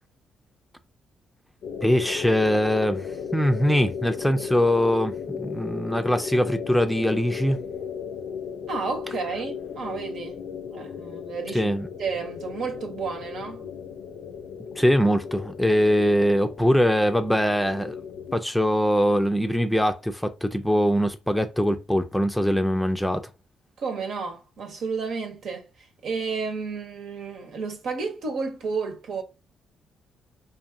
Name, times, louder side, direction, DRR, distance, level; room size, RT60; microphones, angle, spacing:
sound 1, 1.6-18.4, left 6 dB, 70° left, 0.6 m, -36 dB
voice 1, 1.8-3.1 3.3-7.6 11.5-11.9 14.8-18.0 18.3-23.2, equal, 5° left, 0.6 m, -22 dB
voice 2, 8.7-10.4 10.7-11.7 12.0-13.7 23.8-29.2, right 4 dB, 70° right, 1.2 m, -32 dB
5.0 x 2.7 x 2.7 m
cardioid pair, 90°, 0 cm